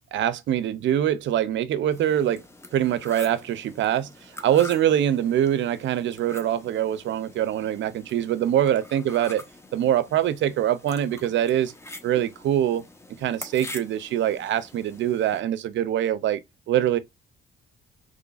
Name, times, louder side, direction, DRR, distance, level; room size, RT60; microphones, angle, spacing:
voice 1, 0.1-2.4 2.7-4.1 4.4-9.4 9.7-11.7 12.0-12.8 13.2-16.4 16.7-17.0, right 11 dB, 70° right, 0.5 m, -24 dB
sound 1, 1.9-15.4, left 2 dB, 15° left, 0.7 m, -45 dB
3.8 x 3.2 x 2.4 m
cardioid pair, 90°, 20 cm